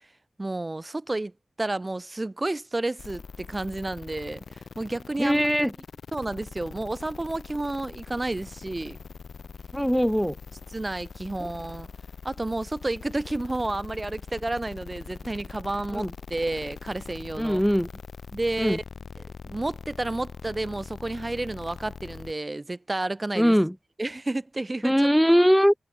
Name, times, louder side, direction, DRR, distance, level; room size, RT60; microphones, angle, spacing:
voice 1, 0.4-5.4 6.1-9.0 10.7-11.9 12.2-17.6 18.3-18.8 19.2-23.6 24.0-25.4, right 2 dB, 20° right, 2.1 m, -31 dB
sound 1, 3.0-22.3, left 5 dB, 65° left, 3.3 m, -42 dB
voice 2, 5.2-5.7 9.7-10.3 11.4-11.5 15.9-16.1 17.4-17.9 18.6-18.8 23.4-23.7 24.8-25.7, equal, ahead, 2.7 m, -21 dB
wide cardioid pair, 90°, 0 cm